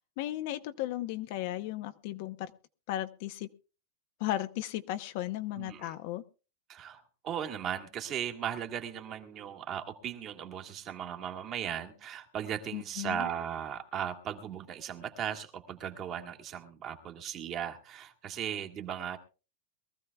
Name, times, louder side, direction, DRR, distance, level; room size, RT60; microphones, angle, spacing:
voice 1, 0.0-2.5 2.9-3.5 4.2-6.2 12.7-13.3, left 14 dB, 50° left, 10 dB, 0.8 m, -35 dB
voice 2, 5.6-6.0 6.7-19.2, right 9 dB, 30° right, 3 dB, 1.7 m, -37 dB
22.5 x 14.5 x 2.3 m, 0.34 s
supercardioid pair, 160°, 0 cm